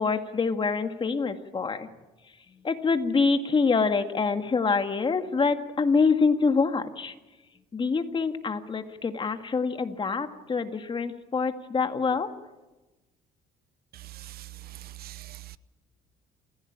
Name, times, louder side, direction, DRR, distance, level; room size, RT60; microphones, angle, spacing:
voice 1, 0.0-1.9 2.6-7.1 7.7-12.3, left 4 dB, 30° left, 2.0 m, -25 dB
voice 2, 13.9-15.6, right 14 dB, 65° right, 0.8 m, -43 dB
28.0 x 16.0 x 8.8 m
cardioid pair, 110°, 17 cm